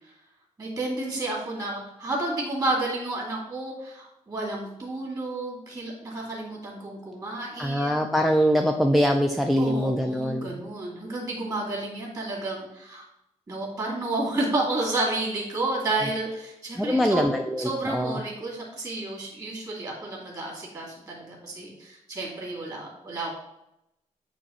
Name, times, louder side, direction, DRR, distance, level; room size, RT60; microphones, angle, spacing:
voice 1, 0.6-8.0 9.6-13.1 13.5-17.3 17.6-23.4, right 2 dB, 30° right, -3 dB, 2.0 m, -31 dB
voice 2, 7.6-10.6 16.8-18.2, equal, ahead, 3 dB, 0.3 m, -23 dB
8.4 x 3.0 x 4.2 m, 0.83 s
wide cardioid pair, 170°, 13 cm